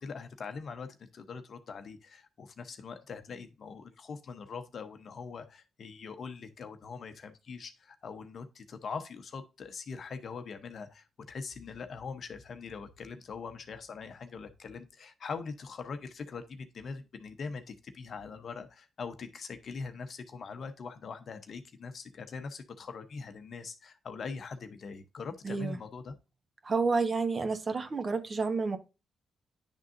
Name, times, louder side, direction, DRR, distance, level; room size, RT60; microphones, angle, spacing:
voice 1, 0.0-26.2, left 5 dB, 60° left, 0.9 m, -42 dB
voice 2, 25.4-25.8 26.6-28.8, right 4 dB, 45° right, 1.1 m, -30 dB
10.0 x 3.7 x 2.6 m
supercardioid pair, 60°, 0 cm